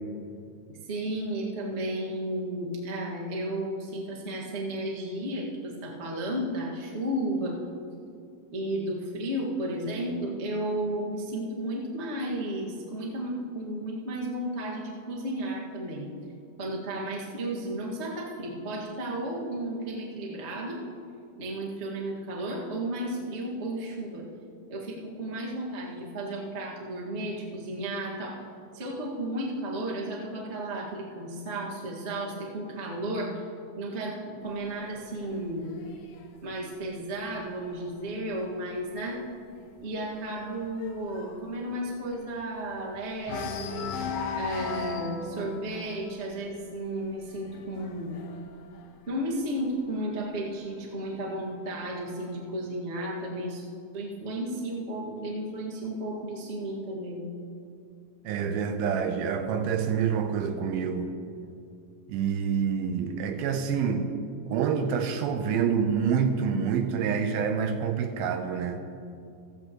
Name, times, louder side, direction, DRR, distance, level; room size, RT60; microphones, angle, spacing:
voice 1, 0.9-7.6 8.5-16.1 16.6-20.8 21.4-24.2 24.7-28.4 28.7-33.4 33.8-35.7 36.4-39.2 39.8-43.9 44.3-48.2 49.1-53.7 53.9-57.2, right 1 dB, 50° right, -3 dB, 0.7 m, -33 dB
sound 1, 34.5-38.1 38.5-38.8 39.1-39.2 39.6-42.8 43.2-49.8 50.6-51.6, left 5 dB, 85° left, 2.9 m, -39 dB
voice 2, 58.2-61.1 62.1-64.2 64.5-68.8, right 7 dB, 80° right, 7 dB, 2.4 m, -27 dB
15.5 x 15.5 x 3.0 m, 2.5 s
omnidirectional pair, 4.5 m